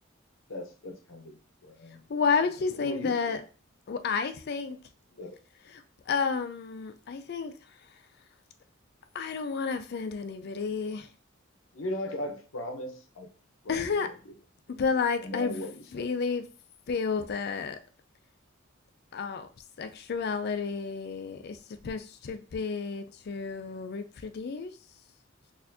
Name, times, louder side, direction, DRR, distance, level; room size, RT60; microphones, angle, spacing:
voice 1, 0.5-1.4 1.6-2.1 2.8-3.4 5.2-5.4 11.7-13.3 13.6-14.3 15.2-16.1, left 1 dB, 75° left, 3 dB, 0.7 m, -38 dB
voice 2, 2.1-3.4 3.9-4.8 6.1-7.5 9.1-11.1 13.7-14.1 14.7-15.6 15.9-16.4 16.9-17.8 19.1-19.5 19.8-21.6 21.8-24.7, left 5 dB, 50° left, 9 dB, 0.4 m, -31 dB
4.1 x 2.6 x 2.7 m, 0.36 s
head